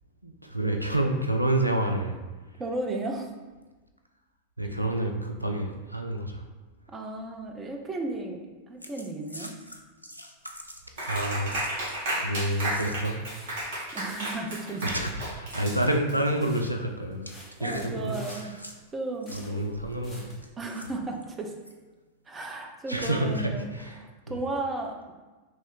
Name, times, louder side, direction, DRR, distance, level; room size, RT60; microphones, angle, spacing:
voice 1, 0.2-2.2 4.6-6.4 11.0-11.5 12.2-13.2 14.8-17.4 17.6-18.5 19.3-20.4 22.9-24.3, right 1 dB, 90° right, 3 dB, 0.3 m, -28 dB
voice 2, 2.6-3.3 6.9-9.6 13.9-14.9 17.6-18.5 18.9-19.4 20.6-21.5 22.3-23.7 24.0-25.1, right 2 dB, 20° right, 2 dB, 0.5 m, -34 dB
sound 1, 8.8-13.2 13.6-15.7 15.9-16.3 17.2-18.8 19.2-19.5 20.4-21.7 22.3-22.5, equal, 90° left, 0.3 m, -47 dB
sound 2, 10.4-20.5, equal, 10° left, 1.0 m, -51 dB
Clapping, 11.0-16.3, right 1 dB, 55° right, 1.4 m, -32 dB
3.1 x 3.1 x 3.7 m, 1.2 s
figure-of-eight pair, 90°, 0 cm